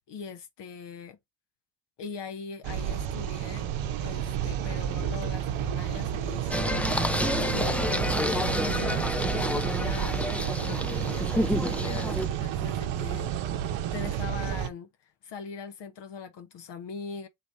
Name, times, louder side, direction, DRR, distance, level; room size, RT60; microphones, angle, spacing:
voice 1, 0.1-1.2 2.0-3.7 4.0-6.9 7.5-13.3 13.9-17.3, left 6 dB, 65° left, 0.8 m, -41 dB
sound 1, 2.6-14.7, right 10 dB, 75° right, 0.7 m, -31 dB
Singing, 6.5-12.3, left 1 dB, 5° left, 0.4 m, -29 dB
4.0 x 2.6 x 3.2 m
supercardioid pair, 50°, 47 cm